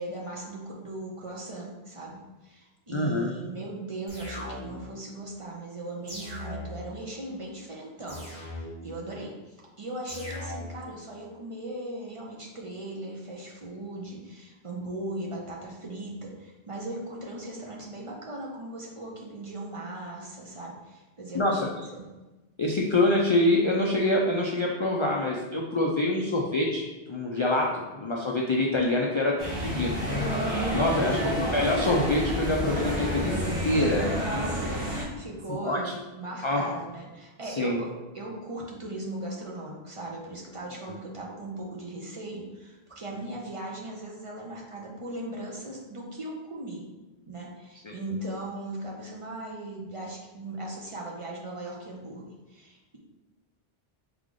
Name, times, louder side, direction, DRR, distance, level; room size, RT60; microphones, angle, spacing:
voice 1, 0.0-22.1 33.8-34.0 34.6-46.8 47.3-53.0, right 1 dB, 35° right, -2 dB, 0.6 m, -38 dB
voice 2, 2.9-3.3 21.3-21.7 22.6-30.0 30.7-33.4 33.6-34.1 35.6-35.9 36.4-36.8 37.4-37.8 47.8-47.9, left 1 dB, 50° left, -1 dB, 0.3 m, -25 dB
sound 1, 4.1-5.0 6.1-7.0 8.1-9.0 10.1-11.0, left 1 dB, 55° right, 1.9 m, -39 dB
sound 2, 29.4-35.0, equal, 25° left, 1.3 m, -29 dB
3.6 x 3.4 x 3.7 m, 1.1 s
omnidirectional pair, 1.0 m